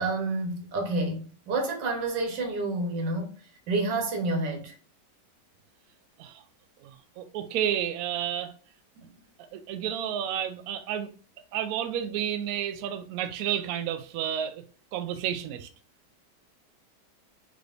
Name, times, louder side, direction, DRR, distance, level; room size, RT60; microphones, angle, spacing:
voice 1, 0.0-3.3 3.7-4.8 9.0-9.1, right 2 dB, 90° right, 1.7 m, -29 dB
voice 2, 6.8-8.5 9.5-11.1 11.5-14.6 14.9-15.7, right 10 dB, 70° right, 0.9 m, -31 dB
3.7 x 3.4 x 2.4 m
omnidirectional pair, 1.9 m